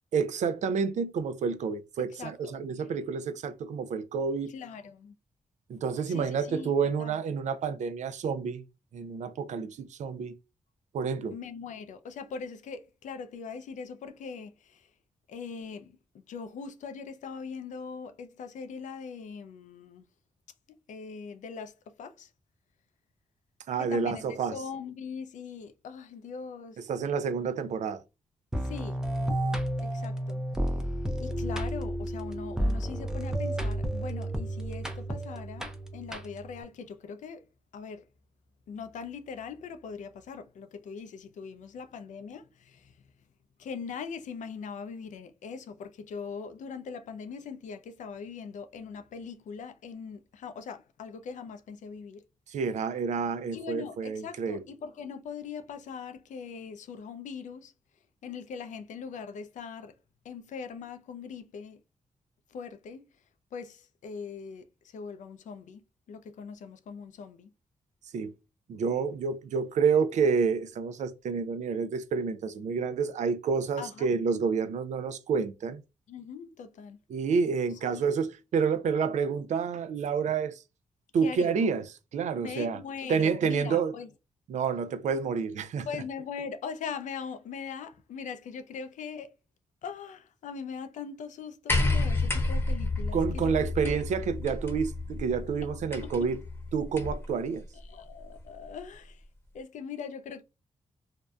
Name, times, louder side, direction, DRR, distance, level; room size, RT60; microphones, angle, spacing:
voice 1, 0.1-4.5 5.7-8.6 8.9-10.3 10.9-11.3 23.7-24.6 26.9-28.0 52.5-54.6 68.1-68.3 68.7-75.8 77.1-80.6 81.1-81.8 82.1-82.8 83.1-83.9 84.5-85.9 93.1-96.4 96.7-97.6, right 6 dB, 70° right, 0.4 m, -29 dB
voice 2, 2.0-2.6 4.5-5.1 6.1-7.2 11.3-14.9 15.3-20.1 20.7-22.3 23.8-26.9 28.6-29.0 29.3-29.4 29.8-30.4 31.2-37.5 37.7-38.0 38.7-42.9 43.6-52.2 53.5-57.7 58.2-59.9 60.2-61.8 62.5-63.0 63.5-67.5 73.8-74.1 76.1-77.0 77.8-78.1 81.2-81.6 82.4-84.1 85.9-89.3 89.8-93.5 93.8-94.0 96.2-96.3 97.7-99.2 99.5-100.4, left 6 dB, 75° left, 0.4 m, -41 dB
sound 1, 28.5-36.6, right 1 dB, 5° right, 0.5 m, -32 dB
sound 2, 91.7-97.3 98.4-98.5, left 2 dB, 15° left, 0.8 m, -30 dB
2.6 x 2.1 x 2.3 m
cardioid pair, 80°, 13 cm